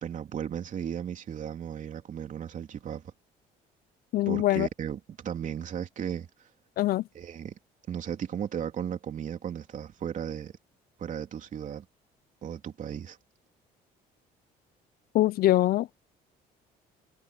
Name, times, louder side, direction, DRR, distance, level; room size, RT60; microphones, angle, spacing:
voice 1, 0.0-3.0 4.3-6.3 7.1-7.6 7.9-10.5 11.0-11.8 12.4-13.2, right 9 dB, 50° right, 3.1 m, -35 dB
voice 2, 4.1-4.7 6.8-7.0 15.1-15.9, left 15 dB, 65° left, 0.5 m, -23 dB
cardioid pair, 110°, 17 cm